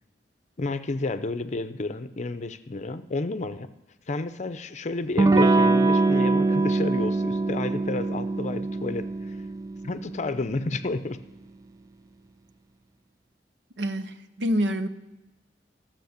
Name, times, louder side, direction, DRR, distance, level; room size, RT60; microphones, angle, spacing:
voice 1, 0.6-3.7 4.1-9.4 9.8-11.2, left 2 dB, 40° left, 11 dB, 0.6 m, -31 dB
Electric guitar / Strum, 5.2-10.5, right 3 dB, 20° right, 0.4 m, -23 dB
voice 2, 13.8-14.9, equal, 85° right, 11 dB, 0.8 m, -27 dB
13.0 x 7.6 x 6.6 m, 1.0 s
head